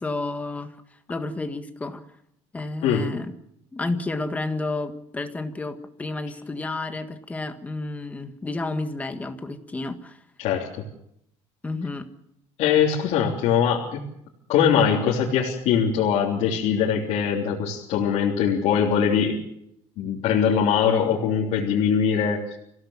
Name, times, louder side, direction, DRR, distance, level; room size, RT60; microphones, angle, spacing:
voice 1, 0.0-2.0 2.5-3.3 3.7-10.2 11.6-12.1, left 2 dB, 10° left, 7 dB, 1.7 m, -31 dB
voice 2, 10.4-10.8 12.6-14.0 14.5-19.4 20.0-22.6, left 7 dB, 60° left, -4 dB, 3.4 m, -22 dB
26.0 x 16.5 x 7.3 m, 0.75 s
cardioid pair, 175°, 12 cm